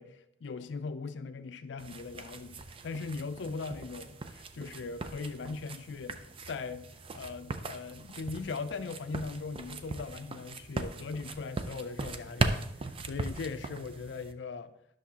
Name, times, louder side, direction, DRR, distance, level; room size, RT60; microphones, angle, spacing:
voice 1, 0.0-2.6 2.8-6.2 6.5-6.9 7.1-14.7, left 4 dB, 70° left, 0.4 m, -39 dB
sound 1, 1.8-14.3, right 3 dB, 30° right, 0.4 m, -39 dB
10.5 x 6.2 x 2.9 m
head